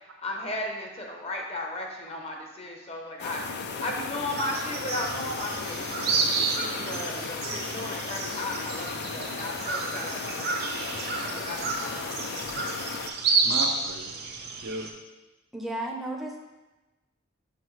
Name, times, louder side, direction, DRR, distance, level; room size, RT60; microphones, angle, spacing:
voice 1, 0.2-10.9 11.2-12.2, left 1 dB, 30° left, 1 dB, 0.8 m, -36 dB
sound 1, 3.2-13.1, left 5 dB, 55° left, 0.4 m, -36 dB
sound 2, 4.3-14.9, right 4 dB, 50° right, 0.6 m, -31 dB
voice 2, 11.5-12.0 13.0-14.2 14.6-14.9, right 2 dB, 90° right, 2 dB, 0.8 m, -38 dB
voice 3, 15.5-16.4, right 1 dB, ahead, -1 dB, 0.6 m, -33 dB
5.9 x 5.4 x 3.2 m, 1.1 s
head